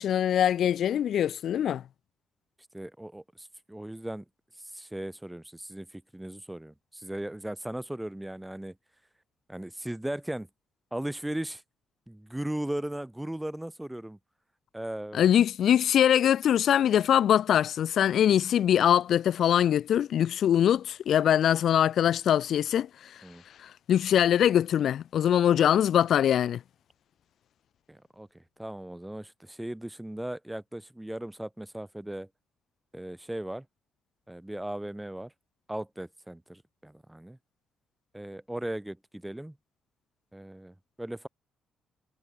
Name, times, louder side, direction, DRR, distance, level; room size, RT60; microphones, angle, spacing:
voice 1, 0.0-1.8 15.1-23.2 23.6-26.6, left 10 dB, 65° left, 0.3 m, -23 dB
voice 2, 2.7-4.2 4.7-8.7 9.5-10.5 10.9-11.6 12.1-14.2 14.7-15.3 23.2-23.4 27.9-32.3 32.9-33.7 34.3-35.3 35.7-37.4 38.1-39.6 40.3-41.3, right 1 dB, 5° right, 0.7 m, -37 dB
cardioid pair, 90°, 0 cm